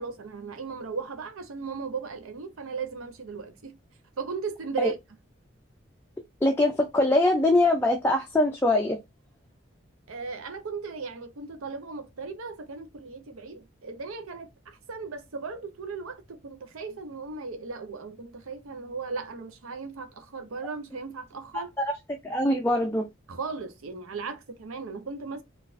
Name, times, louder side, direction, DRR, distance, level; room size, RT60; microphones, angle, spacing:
voice 1, 0.0-3.7 4.2-5.0 10.1-21.7 23.3-25.4, right 4 dB, 90° right, 0.6 m, -36 dB
voice 2, 6.4-9.0 21.5-21.8 22.2-23.1, left 1 dB, 10° left, 0.3 m, -23 dB
3.9 x 2.4 x 2.5 m
head